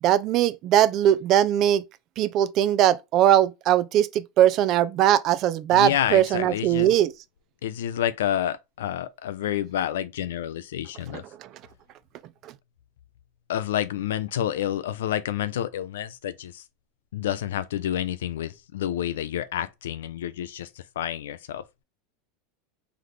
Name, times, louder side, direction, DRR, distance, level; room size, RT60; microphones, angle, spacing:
voice 1, 0.0-1.8 2.2-7.1 11.4-11.5, right 11 dB, 50° right, 0.5 m, -20 dB
voice 2, 5.7-6.9 7.6-11.2 13.5-16.6 17.1-20.7 21.0-21.7, left 11 dB, 80° left, 0.4 m, -29 dB
3.4 x 3.1 x 3.8 m
hypercardioid pair, 100°, 0 cm